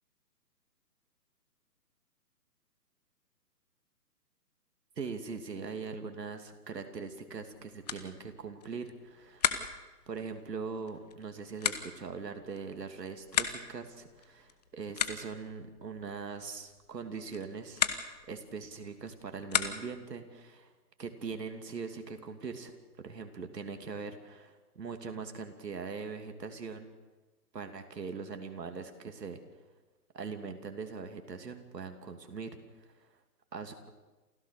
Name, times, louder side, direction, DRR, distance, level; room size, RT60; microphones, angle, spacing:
voice 1, 5.0-9.5 10.1-17.8 18.3-20.7 21.0-22.7 23.0-26.9 27.5-29.4 30.1-32.5 32.8-32.9 33.5-33.9, right 5 dB, 75° right, 7 dB, 3.0 m, -41 dB
sound 1, 7.4-20.1, left 8 dB, 25° left, 1.0 m, -38 dB
28.0 x 15.5 x 6.8 m, 1.2 s
hypercardioid pair, 160°, 50 cm